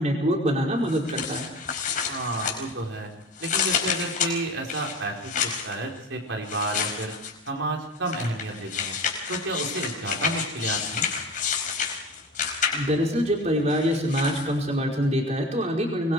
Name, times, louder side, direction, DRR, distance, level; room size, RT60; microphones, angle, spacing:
voice 1, 0.0-1.5 12.7-16.1, equal, 35° right, -1 dB, 5.2 m, -25 dB
sound 1, 0.9-3.0 3.4-5.7 6.5-7.5 8.1-13.1 13.7-14.5, left 7 dB, 45° left, 4.8 m, -29 dB
voice 2, 2.1-3.1 3.4-7.1 7.5-9.0 9.3-11.1, right 2 dB, 75° right, 0 dB, 4.3 m, -31 dB
25.5 x 23.0 x 4.8 m, 0.86 s
head